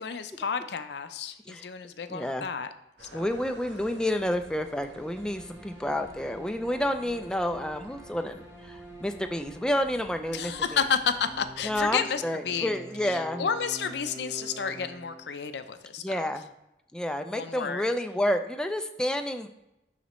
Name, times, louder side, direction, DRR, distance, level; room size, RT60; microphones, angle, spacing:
voice 1, 0.0-2.7 3.0-3.3 10.3-12.7 13.0-16.2 17.3-17.8, left 6 dB, 70° left, 10 dB, 0.5 m, -31 dB
voice 2, 2.1-2.5 3.1-10.8 11.6-13.5 16.0-16.5 16.9-19.5, left 1 dB, 5° left, 6 dB, 0.3 m, -30 dB
sound 1, 3.0-11.9, right 1 dB, 80° right, 1.4 m, -52 dB
sound 2, 4.5-15.6, right 1 dB, 15° right, 1.1 m, -47 dB
12.0 x 4.1 x 3.1 m, 0.89 s
head